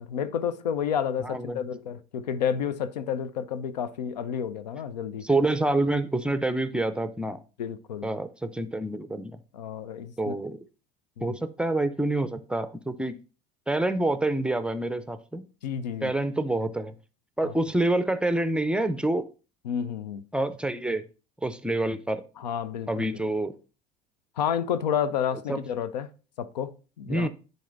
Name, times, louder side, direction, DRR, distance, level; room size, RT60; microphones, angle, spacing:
voice 1, 0.0-5.3 7.6-8.1 9.5-10.3 11.2-11.3 15.6-16.1 17.4-17.5 19.6-20.2 22.4-23.2 24.4-26.1 26.4-27.3, left 8 dB, 80° left, 0.5 m, -30 dB
voice 2, 1.2-1.6 5.2-7.4 8.0-9.4 10.2-10.6 11.2-13.2 13.7-15.4 16.0-16.9 17.4-19.3 20.3-21.0 21.4-22.2 22.9-23.5 25.5-25.6 27.1-27.3, right 2 dB, 5° right, 0.5 m, -27 dB
10.0 x 4.0 x 2.5 m
hypercardioid pair, 70°, 21 cm